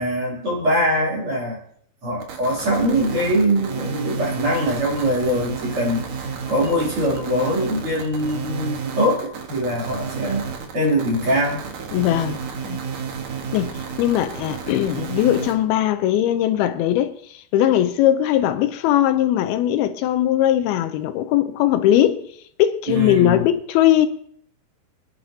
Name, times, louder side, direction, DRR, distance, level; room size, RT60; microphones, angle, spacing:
voice 1, 0.0-1.6 2.0-10.5 10.7-11.6 22.9-23.4, equal, 35° right, 3.7 m, -22 dB
sound 1, 2.2-15.5, right 6 dB, 60° right, 2.3 m, -31 dB
voice 2, 11.9-12.4 12.6-12.8 13.5-13.7 14.0-22.3 22.6-24.1, left 12 dB, 80° left, 2.5 m, -19 dB
25.0 x 10.5 x 2.8 m
omnidirectional pair, 4.5 m